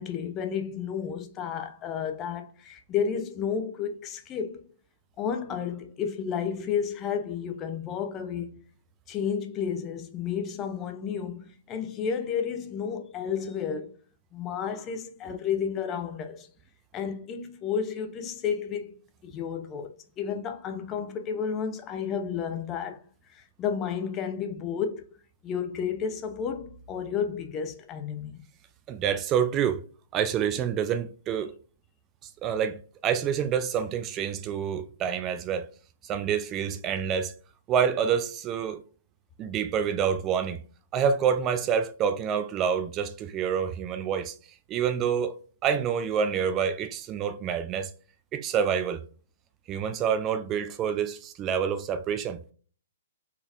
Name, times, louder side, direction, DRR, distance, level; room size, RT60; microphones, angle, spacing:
voice 1, 0.0-4.6 5.2-8.6 9.1-13.9 14.3-16.5 16.9-19.0 19.2-23.0 23.3-25.1 25.4-28.4, left 7 dB, 25° left, 0.6 m, -32 dB
voice 2, 28.9-29.8 30.1-31.5 32.2-35.7 36.0-37.3 37.7-38.8 39.4-40.6 40.9-44.4 44.7-45.4 45.6-47.9 48.3-49.0 49.7-52.4, right 7 dB, 25° right, 0.3 m, -27 dB
4.2 x 3.3 x 2.5 m
figure-of-eight pair, 120°, 0 cm